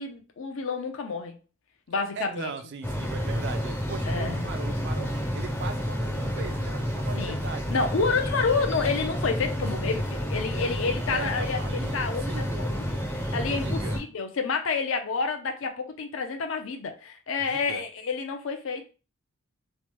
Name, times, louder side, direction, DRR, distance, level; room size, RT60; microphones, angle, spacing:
voice 1, 0.0-1.4 1.9-2.5 4.0-4.5 7.2-7.4 7.7-12.8 13.1-18.9, left 4 dB, 65° left, 0.5 m, -29 dB
voice 2, 2.2-7.9 11.1-12.7 13.6-14.0 17.4-17.8, right 5 dB, 55° right, 0.3 m, -39 dB
sound 1, 2.8-14.0, equal, 10° left, 0.5 m, -30 dB
3.1 x 2.1 x 2.9 m
head